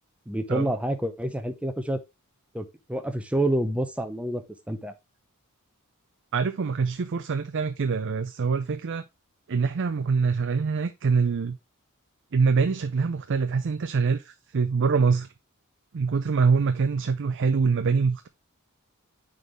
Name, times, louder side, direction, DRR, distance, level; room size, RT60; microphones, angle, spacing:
voice 1, 0.3-2.0 2.5-4.9, right 1 dB, 5° right, 0.7 m, -28 dB
voice 2, 6.3-9.0 9.5-11.6 12.3-15.3 15.9-18.3, right 5 dB, 55° right, 0.5 m, -24 dB
9.3 x 3.9 x 3.2 m
head